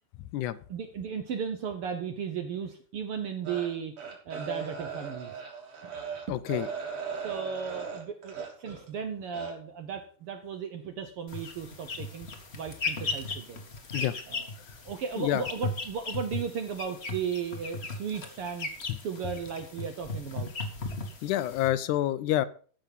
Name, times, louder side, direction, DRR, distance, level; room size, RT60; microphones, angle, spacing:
voice 1, 0.7-5.4 5.8-6.0 7.2-12.3 12.5-13.6 14.3-14.5 14.8-18.7 19.0-20.5, right 7 dB, 65° right, 7 dB, 1.4 m, -35 dB
sound 1, 3.4-8.9 9.3-9.5, right 6 dB, 45° right, 3.8 m, -38 dB
voice 2, 6.3-6.7 13.9-14.2 15.2-15.4 21.2-22.5, left 13 dB, 80° left, 15 dB, 2.0 m, -27 dB
sound 2, 11.3-21.7, left 3 dB, 40° left, 0.9 m, -37 dB
14.5 x 6.4 x 5.4 m, 0.43 s
omnidirectional pair, 3.5 m